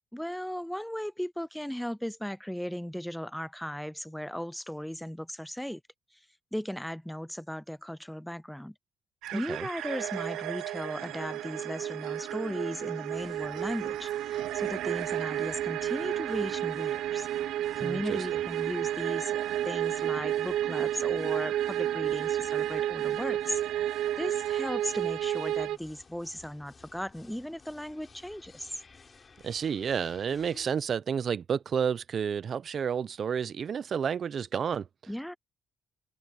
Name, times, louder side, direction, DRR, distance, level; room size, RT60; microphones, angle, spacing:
voice 1, 0.1-5.8 6.1-6.2 6.5-8.7 9.3-17.3 17.8-28.8 35.1-35.3, equal, 5° left, 0.5 m, -37 dB
sound 1, 9.2-25.8, right 12 dB, 85° right, 1.0 m, -31 dB
voice 2, 9.3-9.7 17.8-18.4 29.4-34.9, right 7 dB, 50° right, 0.7 m, -31 dB
sound 2, 13.1-30.7, left 4 dB, 35° left, 4.7 m, -56 dB
cardioid pair, 90°, 0 cm